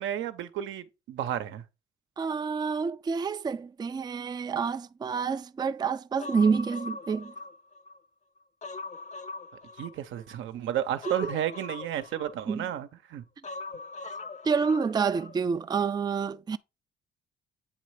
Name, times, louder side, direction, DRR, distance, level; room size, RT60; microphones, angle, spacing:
voice 1, 0.0-1.6 9.8-13.2, right 11 dB, 80° right, 0.8 m, -32 dB
voice 2, 2.2-7.3 11.2-11.3 12.5-12.7 14.4-16.6, right 5 dB, 20° right, 0.4 m, -28 dB
Human voice, 6.2-8.0 8.4-10.4 11.0-12.8 13.4-15.4 15.7-15.8, left 3 dB, 35° left, 0.7 m, -41 dB
8.6 x 3.2 x 4.8 m
cardioid pair, 90°, 20 cm